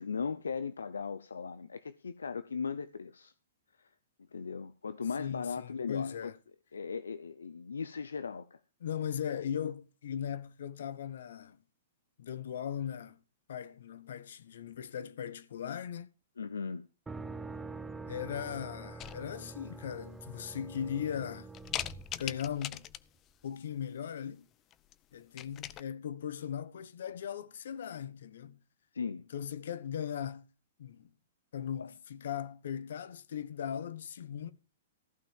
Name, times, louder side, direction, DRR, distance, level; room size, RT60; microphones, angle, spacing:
voice 1, 0.0-3.3 4.3-6.3 6.7-8.6 16.4-16.9 28.9-29.2 31.8-31.9, left 5 dB, 90° left, 0.7 m, -38 dB
voice 2, 5.2-6.4 8.8-11.6 12.2-13.2 13.5-16.1 18.1-21.5 22.1-22.8 23.4-24.5 25.1-28.6 29.3-30.5 30.8-31.1 31.5-34.5, left 8 dB, 70° left, 1.1 m, -38 dB
sound 1, 17.1-22.9, right 3 dB, 10° right, 0.7 m, -45 dB
sound 2, 19.0-19.6 20.2-20.3 20.8-21.2 21.5-23.3 24.7-24.9 25.2-25.8, left 12 dB, 30° left, 0.6 m, -41 dB
14.5 x 5.8 x 7.2 m
hypercardioid pair, 120°, 0 cm